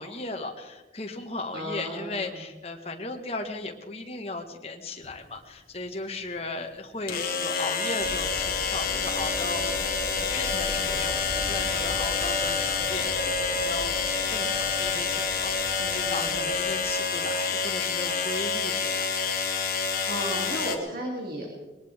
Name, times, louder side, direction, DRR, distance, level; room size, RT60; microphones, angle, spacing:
voice 1, 0.0-14.0 14.3-19.1, left 2 dB, 35° left, 3 dB, 1.6 m, -36 dB
voice 2, 1.5-2.4 15.8-16.5 19.8-21.5, equal, 55° right, -2 dB, 3.0 m, -35 dB
sound 1, 5.0-5.1 7.1-20.8, left 5 dB, 55° left, 1.7 m, -28 dB
sound 2, 8.0-16.9, left 1 dB, 75° right, 2.8 m, -37 dB
21.0 x 19.0 x 3.6 m, 1.1 s
head